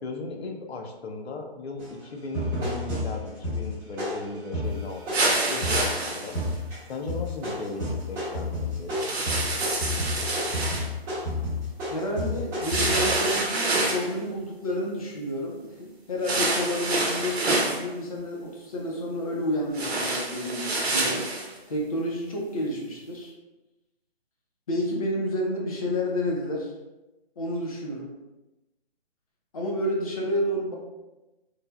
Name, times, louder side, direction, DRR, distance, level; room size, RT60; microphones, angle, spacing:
voice 1, 0.0-6.4 6.9-8.9, left 3 dB, 80° left, 3 dB, 0.6 m, -36 dB
sound 1, 1.8-1.9 2.3-5.9 6.3-6.8 7.1-13.5, left 1 dB, 15° right, 1.0 m, -31 dB
sound 2, 5.1-6.5 8.9-10.9 12.6-14.1 16.2-17.8 19.7-21.5, right 2 dB, 80° right, 0.8 m, -27 dB
voice 2, 11.9-21.3 21.7-23.3 24.7-26.7 27.4-28.1 29.5-30.7, equal, 35° left, -2 dB, 0.5 m, -30 dB
3.2 x 2.1 x 2.2 m, 1.0 s
figure-of-eight pair, 150°, 31 cm